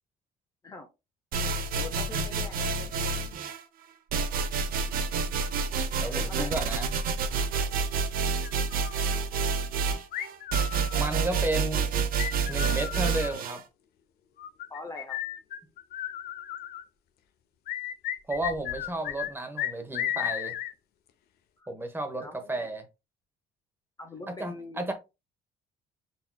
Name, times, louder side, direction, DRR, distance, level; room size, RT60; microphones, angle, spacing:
sound 1, 1.3-3.6 4.1-13.6, right 5 dB, 60° right, 0.6 m, -28 dB
voice 1, 1.7-3.2 6.1-6.5 14.7-15.2 21.6-21.7 22.2-22.7 24.0-24.8, left 2 dB, 20° left, 0.6 m, -43 dB
voice 2, 6.0-6.9 10.9-11.9 12.4-13.6 18.3-20.6 21.7-22.9 24.3-24.9, right 1 dB, 15° right, 1.0 m, -33 dB
sound 2, 8.4-9.2 10.1-11.3 12.2-13.4 14.4-16.8 17.7-19.3 19.6-20.7, left 12 dB, 70° left, 0.6 m, -34 dB
5.9 x 2.9 x 2.2 m
cardioid pair, 110°, 17 cm